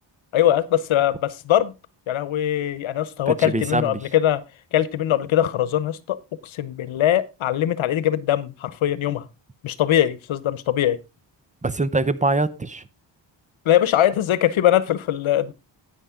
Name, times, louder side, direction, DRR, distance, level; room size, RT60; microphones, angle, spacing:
voice 1, 0.3-1.7 2.1-4.4 4.7-6.2 6.4-9.3 9.6-11.0 13.6-15.5, left 11 dB, 85° left, 1.0 m, -21 dB
voice 2, 3.3-4.0 11.6-12.8, right 2 dB, 15° right, 0.7 m, -23 dB
10.0 x 9.1 x 3.6 m
wide cardioid pair, 115°, 46 cm